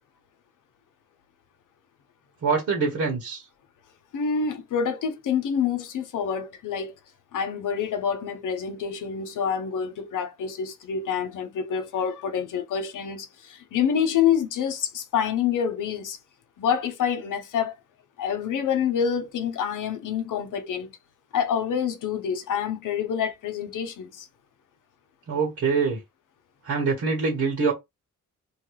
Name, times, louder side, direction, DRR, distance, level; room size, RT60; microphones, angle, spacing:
voice 1, 2.4-3.4 25.3-26.0 26.6-27.7, right 4 dB, 65° right, 1.6 m, -24 dB
voice 2, 4.1-6.9 7.3-16.2 16.6-17.7 18.2-21.0 21.3-24.3, left 7 dB, 75° left, 0.8 m, -27 dB
3.1 x 2.3 x 3.2 m
cardioid pair, 95°, 31 cm